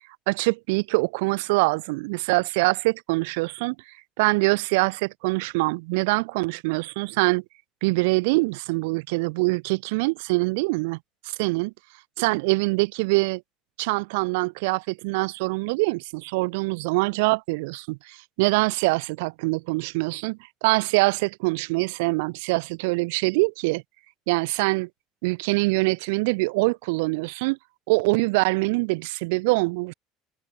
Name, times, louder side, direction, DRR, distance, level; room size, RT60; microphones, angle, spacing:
voice 1, 0.3-3.8 4.2-7.4 7.8-11.0 11.4-11.7 12.2-13.4 13.8-23.8 24.3-24.9 25.2-27.6 27.9-29.9, right 26 dB, 85° right, 0.3 m, -24 dB
cardioid pair, 135°, 0 cm